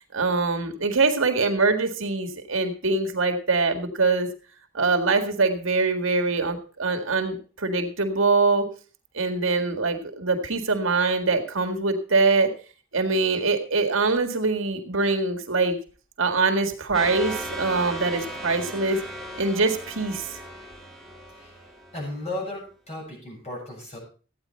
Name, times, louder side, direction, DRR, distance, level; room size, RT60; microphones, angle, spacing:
voice 1, 0.1-4.3 4.7-8.7 9.1-12.5 12.9-15.8 16.2-19.0 19.4-20.4, right 3 dB, 75° right, 4 dB, 1.9 m, -23 dB
sound 1, 16.9-22.3, right 1 dB, ahead, 2.3 m, -37 dB
voice 2, 21.9-24.0, left 1 dB, 35° left, -1 dB, 7.4 m, -35 dB
14.5 x 9.5 x 4.4 m, 0.38 s
head